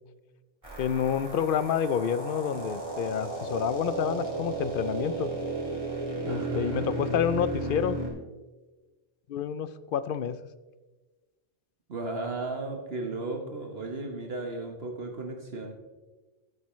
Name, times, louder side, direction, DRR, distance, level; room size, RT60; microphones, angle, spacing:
sound 1, 0.6-8.1, right 3 dB, 30° right, 3.2 m, -34 dB
voice 1, 0.8-5.3 6.2-8.0 9.3-10.4, left 8 dB, 60° left, 14 dB, 0.7 m, -29 dB
voice 2, 6.3-7.4 11.9-15.7, right 2 dB, 60° right, 2 dB, 1.4 m, -35 dB
15.5 x 8.4 x 3.1 m, 1.2 s
omnidirectional pair, 1.1 m